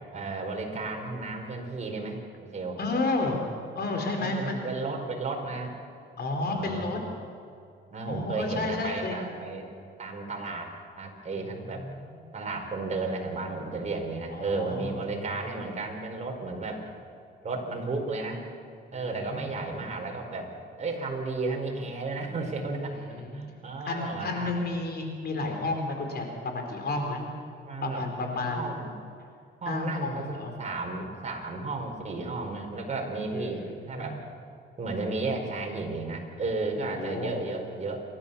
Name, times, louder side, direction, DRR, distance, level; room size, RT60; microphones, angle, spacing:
voice 1, 0.1-2.8 4.1-5.7 6.5-6.9 7.9-9.6 10.0-10.7 11.0-11.8 12.3-16.9 17.4-18.4 18.9-20.5 20.8-23.1 23.3-24.7 27.0-27.3 27.6-28.0 28.4-28.9 29.6-34.2 34.8-38.0, right 3 dB, 35° right, 1 dB, 4.8 m, -33 dB
voice 2, 2.8-4.6 6.2-7.1 8.1-9.2 11.4-11.9 12.3-12.4 14.3-15.0 18.9-19.8 23.1-23.4 23.9-27.2 27.8-28.7 29.7-30.5 33.7-34.2 36.8-37.3, left 2 dB, 55° left, 3 dB, 4.4 m, -32 dB
29.0 x 13.0 x 7.1 m, 2.4 s
cardioid pair, 90°, 20 cm